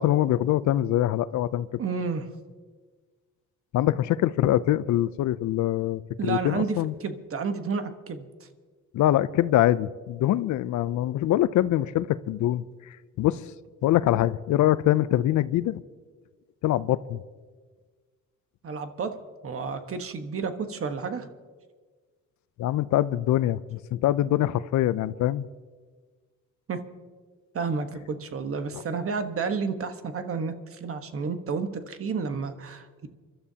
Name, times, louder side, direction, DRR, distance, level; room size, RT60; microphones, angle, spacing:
voice 1, 0.0-1.7 3.7-6.9 8.9-12.6 13.2-13.5 13.8-15.8 16.6-17.2 22.6-25.4 28.7-28.8, left 13 dB, 70° left, 0.5 m, -24 dB
voice 2, 1.8-2.2 6.2-8.3 18.6-19.2 19.4-21.3 26.7-26.8 27.5-33.1, right 5 dB, 45° right, 1.3 m, -31 dB
28.5 x 12.5 x 2.8 m
cardioid pair, 90°, 30 cm